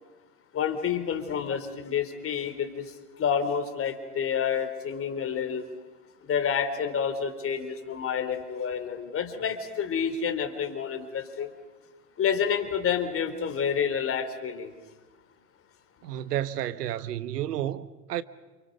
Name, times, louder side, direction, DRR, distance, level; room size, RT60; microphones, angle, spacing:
voice 1, 0.5-2.9 3.2-5.6 6.2-11.5 12.2-14.7, left 7 dB, 30° left, 3.4 m, -29 dB
voice 2, 16.0-18.2, right 12 dB, 75° right, 1.3 m, -31 dB
28.5 x 28.5 x 5.3 m
hypercardioid pair, 105°, 47 cm